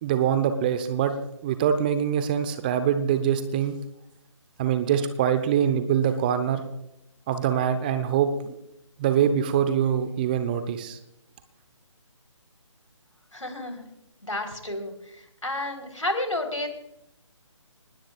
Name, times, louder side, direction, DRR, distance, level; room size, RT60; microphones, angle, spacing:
voice 1, 0.0-1.1 1.4-3.7 4.6-6.6 7.3-8.6 9.0-11.0, right 9 dB, 15° right, 10 dB, 0.8 m, -24 dB
voice 2, 13.3-13.8 14.2-14.9 15.4-16.7, left 1 dB, 80° left, 4 dB, 3.9 m, -30 dB
24.5 x 20.0 x 2.4 m, 0.82 s
figure-of-eight pair, 145°, 16 cm